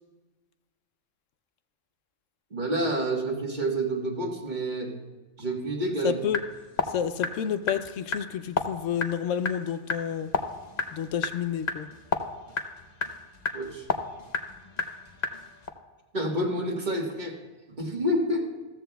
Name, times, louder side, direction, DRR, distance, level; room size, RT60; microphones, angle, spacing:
voice 1, 2.5-4.9 5.4-6.2 13.5-13.9 16.1-17.4 17.7-18.4, right 1 dB, 35° right, 0 dB, 1.6 m, -28 dB
voice 2, 6.0-6.4 6.9-10.3 10.9-11.9, left 8 dB, 75° left, 12 dB, 0.9 m, -30 dB
sound 1, 6.2-15.7, left 4 dB, 40° left, 0.8 m, -33 dB
15.0 x 14.0 x 2.3 m, 1.2 s
omnidirectional pair, 1.4 m